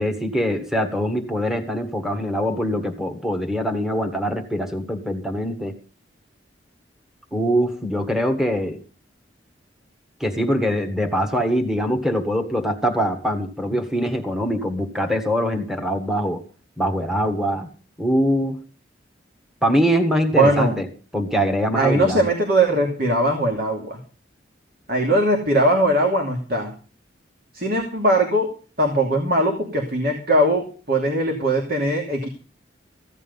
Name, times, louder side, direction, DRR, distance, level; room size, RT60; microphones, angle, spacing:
voice 1, 0.0-5.7 7.3-8.8 10.2-16.4 16.8-17.7 18.0-18.6 19.6-20.8 21.1-22.2, equal, 5° right, 3 dB, 1.6 m, -23 dB
voice 2, 20.3-20.8 21.7-24.0 24.9-26.7 27.5-28.5 28.8-32.3, right 1 dB, 50° right, 1 dB, 2.8 m, -20 dB
15.5 x 11.0 x 5.5 m, 0.37 s
head